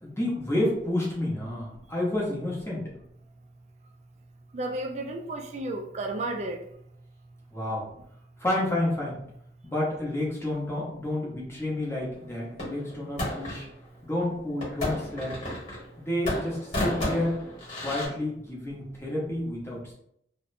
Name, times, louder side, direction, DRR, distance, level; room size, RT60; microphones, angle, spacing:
voice 1, 0.0-2.8 7.5-7.9 8.4-9.2 9.6-13.6 14.0-15.4 16.0-17.4 17.8-19.9, left 1 dB, 15° left, -5 dB, 0.8 m, -30 dB
voice 2, 4.5-6.6, right 2 dB, 40° right, 4 dB, 0.3 m, -32 dB
sound 1, 12.6-13.6 14.6-16.0 16.2-18.1, left 1 dB, 40° left, 1.2 m, -32 dB
2.6 x 2.1 x 2.5 m, 0.71 s
head